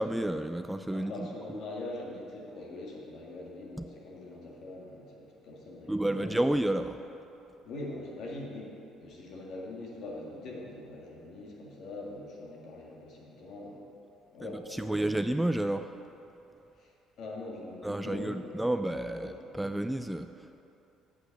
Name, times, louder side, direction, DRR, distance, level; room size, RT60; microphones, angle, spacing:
voice 1, 0.0-1.6 3.8-3.9 5.9-7.0 14.4-16.0 17.8-20.6, right 1 dB, 5° right, 9 dB, 0.3 m, -31 dB
voice 2, 0.9-6.3 7.6-8.7 9.0-13.8 14.3-15.2 16.8-18.6 19.1-19.5, left 2 dB, 60° left, -2 dB, 1.9 m, -43 dB
8.1 x 5.6 x 6.6 m, 2.8 s
supercardioid pair, 75°, 0 cm